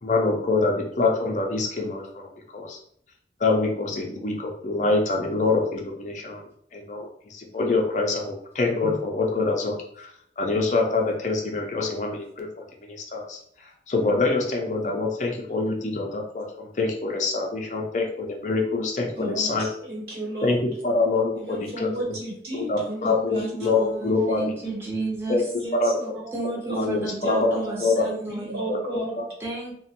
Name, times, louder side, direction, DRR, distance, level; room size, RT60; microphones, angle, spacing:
voice 1, 0.0-2.3 2.5-2.8 3.4-6.4 6.7-12.5 12.8-19.7 20.4-22.1 22.5-24.5 25.3-25.4 25.7-25.9 26.7-28.0 28.7-29.3, left 3 dB, 40° left, 1 dB, 0.4 m, -25 dB
voice 2, 19.1-19.5 19.8-20.6 21.4-23.5 23.7-24.3 24.6-24.8 25.6-26.9 27.2-29.2, right 1 dB, 60° right, -3 dB, 1.0 m, -33 dB
voice 3, 23.0-25.4 26.3-28.6 29.4-29.7, right 3 dB, 15° right, -3 dB, 0.7 m, -33 dB
3.0 x 2.1 x 2.8 m, 0.68 s
head